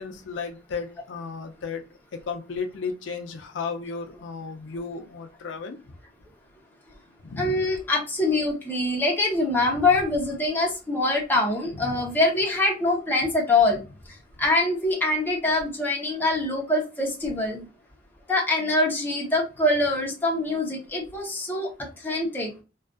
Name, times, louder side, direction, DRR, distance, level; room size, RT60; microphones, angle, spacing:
voice 1, 0.0-1.8 2.3-5.8 7.2-7.7 11.7-12.0, left 5 dB, 85° left, 6 dB, 0.4 m, -34 dB
voice 2, 7.4-13.8 14.4-17.6 18.3-21.7 22.0-22.5, left 2 dB, 10° left, -2 dB, 0.7 m, -24 dB
2.4 x 2.3 x 2.3 m, 0.30 s
head